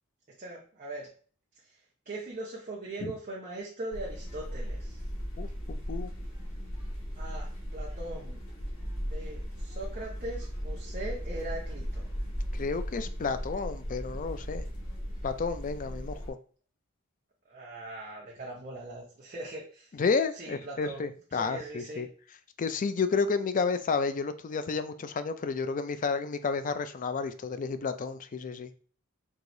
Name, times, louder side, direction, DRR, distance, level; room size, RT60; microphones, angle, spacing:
voice 1, 0.4-1.1 1.7-1.8 2.1-5.0 7.2-8.4 9.0-12.1 17.5-19.9 20.3-22.1, right 2 dB, 40° right, -4 dB, 0.8 m, -40 dB
sound 1, 3.9-16.3, equal, 80° left, 1.5 m, -37 dB
voice 2, 5.4-6.1 12.5-14.6 15.2-16.4 20.0-22.1 22.6-28.7, left 4 dB, 40° left, 11 dB, 0.4 m, -31 dB
4.6 x 2.9 x 2.6 m, 0.42 s
head